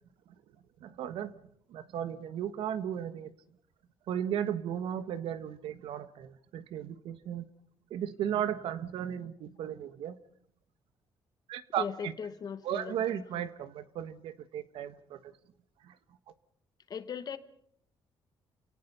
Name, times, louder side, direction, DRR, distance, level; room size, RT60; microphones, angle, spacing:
voice 1, 0.8-1.3 1.7-3.3 4.1-7.5 7.9-10.1 11.5-12.1 12.6-15.3 15.9-16.0, right 10 dB, 85° right, 13 dB, 1.4 m, -35 dB
voice 2, 11.8-13.4 16.9-17.4, left 7 dB, 45° left, 12 dB, 1.2 m, -39 dB
28.5 x 18.0 x 5.5 m, 0.67 s
cardioid pair, 130°, 9 cm